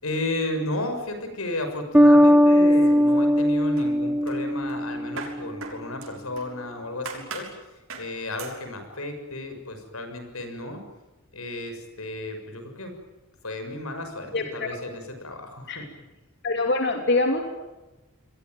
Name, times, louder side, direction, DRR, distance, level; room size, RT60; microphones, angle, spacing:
voice 1, 0.0-7.7 7.9-10.8 11.3-12.9 13.4-15.8, left 1 dB, 90° left, 6 dB, 6.7 m, -33 dB
Bass guitar, 1.9-5.5, equal, 10° right, 1.0 m, -19 dB
sound 1, 2.7-3.4 3.8-6.6 7.1-7.6 7.9-8.1 8.4-8.6, right 4 dB, 70° right, 6.4 m, -40 dB
voice 2, 14.3-14.8 15.7-15.8 16.4-17.4, left 2 dB, 55° left, 3 dB, 3.0 m, -24 dB
29.0 x 21.5 x 9.4 m, 1.0 s
head